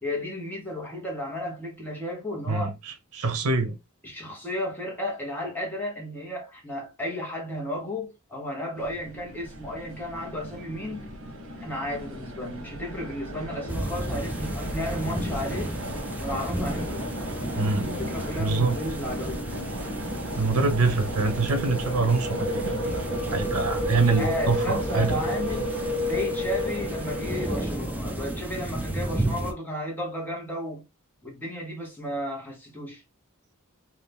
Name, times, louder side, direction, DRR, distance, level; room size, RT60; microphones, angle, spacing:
voice 1, 0.0-2.7 4.0-11.1 11.6-15.7 16.2-17.1 17.7-19.4 24.0-25.7 26.0-30.8 31.2-33.0, left 1 dB, 10° left, 0.9 m, -33 dB
voice 2, 2.5-3.7 17.6-17.9 18.4-18.8 20.4-23.0 23.3-25.1, right 3 dB, 85° right, 0.6 m, -25 dB
sound 1, 8.8-27.6, equal, 65° right, 1.1 m, -33 dB
sound 2, 13.7-29.5, right 1 dB, 5° right, 0.3 m, -34 dB
2.7 x 2.4 x 3.4 m
head